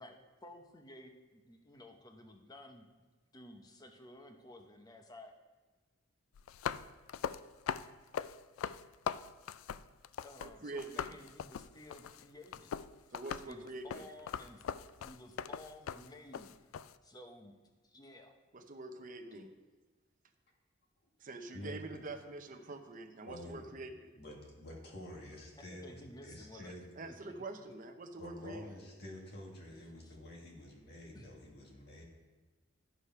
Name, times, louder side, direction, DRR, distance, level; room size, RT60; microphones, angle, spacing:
voice 1, 0.4-2.9 3.3-5.3 10.2-12.7 13.4-14.7 15.0-16.7 17.0-17.6 17.8-18.3 25.7-26.7 27.0-27.7 30.0-30.2 31.1-31.3, left 1 dB, 20° left, 4 dB, 0.8 m, -54 dB
sound 1, 6.3-10.5 10.8-16.9, left 8 dB, 85° left, 0.3 m, -40 dB
voice 2, 10.4-11.2 13.1-14.1 18.5-19.5 21.2-24.1 26.5-26.6 27.0-28.6, right 2 dB, 40° right, 5 dB, 0.7 m, -45 dB
voice 3, 23.2-23.7 24.2-26.9 28.2-32.0, left 1 dB, 55° left, -1 dB, 1.9 m, -49 dB
11.5 x 4.9 x 5.6 m, 1.3 s
head